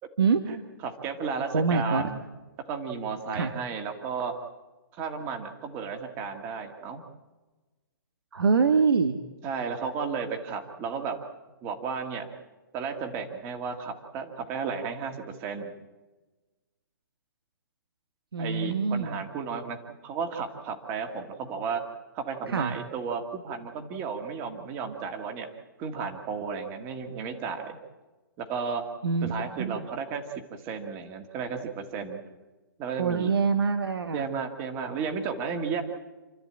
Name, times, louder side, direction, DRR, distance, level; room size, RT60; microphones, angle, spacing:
voice 1, 0.5-2.2 2.7-4.4 4.9-7.0 9.4-11.2 11.6-12.3 12.7-15.7 18.4-21.8 22.1-25.5 25.8-27.8 28.4-28.9 29.2-32.2 32.8-33.3 34.1-35.8, right 5 dB, 15° right, 6 dB, 1.7 m, -33 dB
voice 2, 1.5-2.1 3.3-3.5 8.3-9.2 18.3-19.2 22.5-22.7 29.0-29.3 29.6-29.9 33.0-34.2, right 5 dB, 85° right, 8 dB, 1.6 m, -25 dB
28.5 x 13.0 x 8.7 m, 1.2 s
hypercardioid pair, 170°, 12 cm